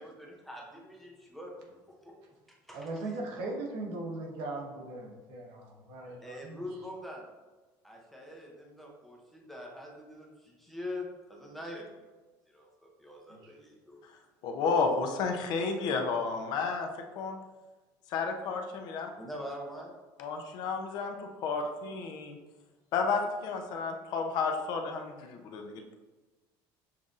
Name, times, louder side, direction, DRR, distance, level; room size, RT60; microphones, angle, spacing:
voice 1, 0.0-1.5 2.5-2.9 6.1-7.3 7.8-11.9 12.5-14.0 19.2-19.9, left 1 dB, ahead, -2 dB, 0.6 m, -44 dB
voice 2, 2.7-6.8 13.3-13.6, right 2 dB, 75° right, 0 dB, 1.0 m, -39 dB
voice 3, 14.4-16.9 17.2-17.4 18.1-19.1 20.2-21.2 21.4-22.3 22.9-25.9, left 4 dB, 50° left, 4 dB, 0.5 m, -31 dB
6.9 x 2.6 x 2.4 m, 1.2 s
cardioid pair, 170°, 9 cm